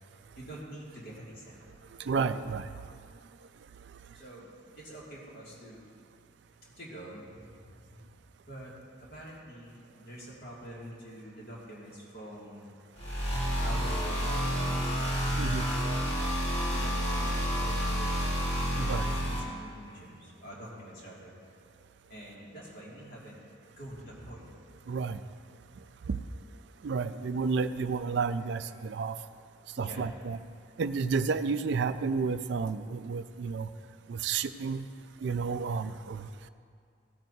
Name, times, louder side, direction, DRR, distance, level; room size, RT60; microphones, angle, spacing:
voice 1, 0.4-1.6 4.1-4.5 4.8-5.8 6.6-8.0 8.5-12.7 13.6-15.9 16.7-21.3 22.1-23.4 23.8-24.4 29.8-30.1, right 1 dB, 50° left, -5 dB, 2.3 m, -46 dB
voice 2, 2.1-2.6 15.4-15.6 18.8-19.0 24.9-25.2 26.1-26.2 26.8-29.2 29.8-30.4 30.8-33.7 34.1-34.8 35.2-36.2, right 5 dB, 60° right, 11 dB, 0.3 m, -31 dB
sound 1, 13.0-19.4, equal, 30° left, 1.6 m, -29 dB
16.0 x 9.0 x 2.7 m, 2.3 s
head